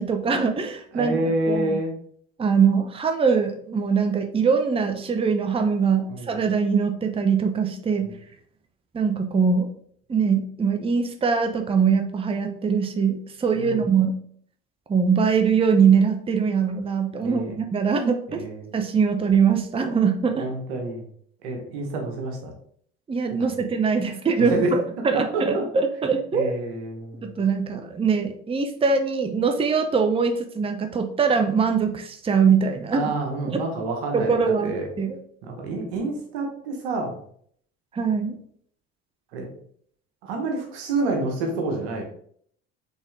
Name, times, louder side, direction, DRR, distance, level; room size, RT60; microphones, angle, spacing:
voice 1, 0.0-1.2 1.5-1.8 2.4-8.1 8.9-9.7 10.1-14.2 14.9-18.5 18.7-20.5 23.1-26.5 27.2-33.1 33.5-33.6 34.1-35.2 37.9-38.4, right 5 dB, 20° right, 5 dB, 0.6 m, -22 dB
voice 2, 0.9-1.9 6.1-6.3 8.0-8.1 13.5-13.9 17.2-17.6 18.3-18.7 20.4-21.0 21.4-22.5 24.4-24.7 25.1-25.7 26.3-27.3 32.9-34.9 35.4-37.2 39.3-39.5 40.2-42.0, right 2 dB, 80° right, 3 dB, 1.2 m, -28 dB
4.1 x 3.6 x 3.5 m, 0.62 s
hypercardioid pair, 75°, 31 cm